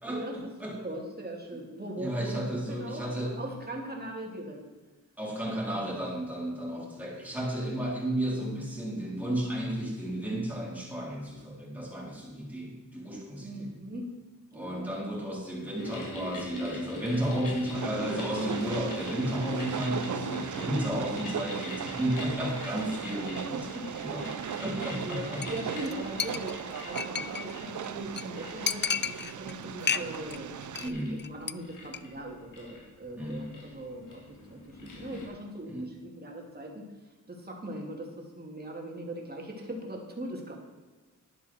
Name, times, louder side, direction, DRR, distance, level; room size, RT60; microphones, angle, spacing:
voice 1, 0.0-0.5 0.8-4.6 5.7-5.9 6.8-6.9 13.4-14.1 14.5-14.9 23.6-23.7 25.0-30.5 30.8-36.9 37.3-40.6, right 1 dB, 30° right, 0 dB, 2.8 m, -40 dB
voice 2, 2.0-3.4 5.2-13.7 14.5-23.7 24.0-24.3 24.6-25.5 30.8-31.2 33.2-33.4 35.7-36.0, right 1 dB, 5° right, -4 dB, 4.1 m, -33 dB
sound 1, 15.8-35.3, left 1 dB, 85° left, 3.2 m, -43 dB
Train, 17.7-30.9, right 8 dB, 70° right, 0.6 m, -38 dB
Chink clink, 25.4-25.6 25.8-25.9 26.2-27.5 27.8-27.9 28.2-28.3 28.7-29.5 29.8-30.4 30.6-30.9 31.2-31.5 31.8-32.0, left 7 dB, 35° left, 0.4 m, -31 dB
11.5 x 10.5 x 4.5 m, 1.3 s
wide cardioid pair, 95°, 31 cm